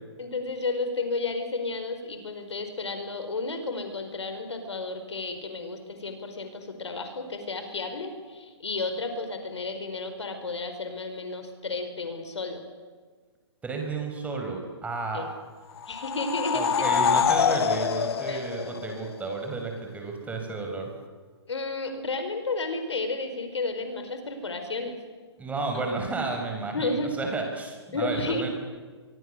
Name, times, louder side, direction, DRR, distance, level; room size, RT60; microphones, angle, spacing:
voice 1, 0.2-12.6 15.1-15.3 15.9-16.6 18.3-18.4 21.5-24.9 26.7-27.2 27.9-28.5, left 3 dB, 80° left, 7 dB, 5.0 m, -32 dB
voice 2, 13.6-15.3 16.5-20.9 25.4-28.5, right 3 dB, 10° right, 3 dB, 5.5 m, -32 dB
sound 1, 15.8-19.3, left 8 dB, 60° left, 1.2 m, -25 dB
24.0 x 24.0 x 6.9 m, 1.5 s
hypercardioid pair, 135°, 15 cm